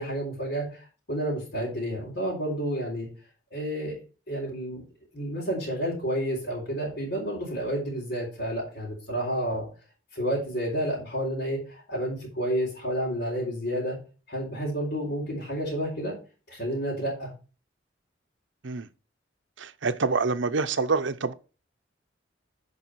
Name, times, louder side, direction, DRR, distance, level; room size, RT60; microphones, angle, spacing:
voice 1, 0.0-3.1 3.5-3.9 4.3-4.8 5.1-9.7 10.1-14.0 14.3-16.1 16.5-17.3, equal, 60° left, 3.9 m, -30 dB
voice 2, 19.6-21.3, right 4 dB, 70° right, 0.8 m, -26 dB
9.8 x 5.3 x 4.6 m
head